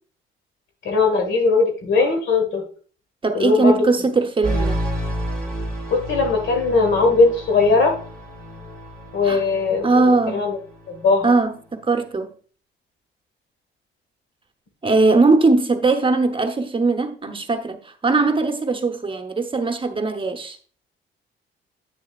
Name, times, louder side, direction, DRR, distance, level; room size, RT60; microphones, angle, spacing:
voice 1, 0.8-2.6 3.3-3.9 5.9-8.0 9.1-10.6 10.9-11.3, left 3 dB, 70° left, 1.8 m, -19 dB
voice 2, 3.2-4.8 9.2-9.4 9.8-10.4 11.2-12.3 14.8-20.6, right 3 dB, 25° right, 0.9 m, -20 dB
sound 1, 4.4-11.2, equal, 5° left, 2.9 m, -30 dB
8.9 x 6.7 x 2.4 m
cardioid pair, 90°, 20 cm